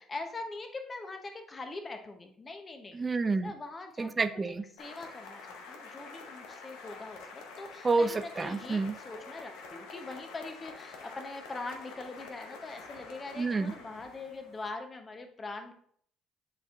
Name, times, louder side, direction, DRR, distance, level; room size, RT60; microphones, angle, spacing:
voice 1, 0.0-3.0 3.4-4.1 4.8-15.7, left 3 dB, 30° left, 5 dB, 0.8 m, -42 dB
voice 2, 2.9-3.5 4.0-4.6 7.8-8.1 8.4-9.0 13.4-13.7, right 3 dB, 25° right, 10 dB, 0.5 m, -28 dB
sound 1, 4.8-14.7, left 4 dB, 85° left, 0.9 m, -47 dB
9.7 x 4.3 x 2.5 m, 0.63 s
supercardioid pair, 90°, 0 cm